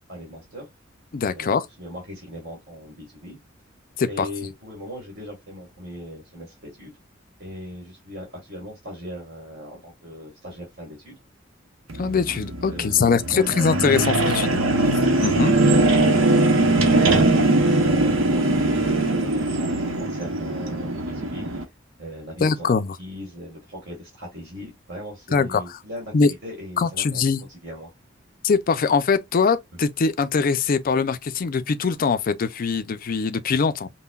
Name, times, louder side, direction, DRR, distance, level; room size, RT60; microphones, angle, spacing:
voice 1, 0.1-0.7 1.3-3.4 4.1-6.9 7.4-11.1 12.7-14.2 16.0-21.5 22.0-22.7 23.0-27.2 27.5-27.9, equal, 55° right, 1.8 m, -39 dB
voice 2, 1.1-1.6 4.0-4.3 12.0-14.6 15.2-15.6 22.4-23.0 25.3-25.6 26.1-26.3 26.8-27.5 28.4-33.9, left 5 dB, 45° left, 0.4 m, -22 dB
sound 1, 11.9-21.6, right 2 dB, 85° right, 0.8 m, -21 dB
5.5 x 2.1 x 2.4 m
head